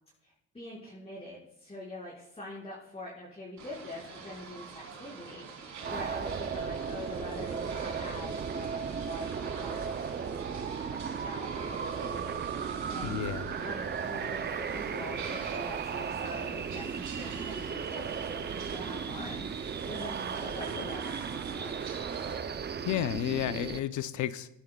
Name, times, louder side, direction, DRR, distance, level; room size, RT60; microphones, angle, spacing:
voice 1, 0.2-21.8, left 1 dB, 20° left, -8 dB, 5.7 m, -44 dB
sound 1, 3.6-22.4, right 5 dB, 65° right, 3.6 m, -45 dB
sound 2, 5.8-23.8, right 6 dB, 35° right, 0.6 m, -36 dB
sound 3, 11.3-15.4, right 5 dB, 85° right, 2.0 m, -55 dB
voice 2, 13.0-13.5 22.8-24.5, left 11 dB, 75° left, 13 dB, 0.8 m, -32 dB
21.5 x 11.5 x 2.4 m, 0.87 s
cardioid pair, 90°, 30 cm